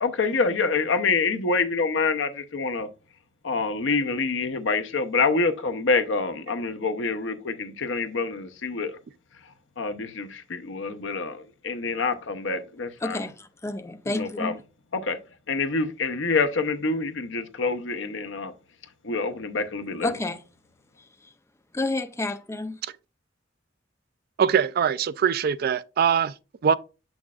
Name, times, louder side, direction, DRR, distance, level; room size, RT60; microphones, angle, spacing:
voice 1, 0.0-2.9 3.4-9.0 9.4-13.2 14.1-14.5 14.9-15.2 15.5-18.5 19.0-20.1, left 4 dB, 80° left, 0.7 m, -26 dB
voice 2, 13.0-14.6 20.0-20.4 21.7-22.8, left 2 dB, 15° left, 0.5 m, -30 dB
voice 3, 24.4-26.3 26.6-26.7, right 7 dB, 55° right, 0.3 m, -22 dB
7.3 x 6.2 x 2.3 m
head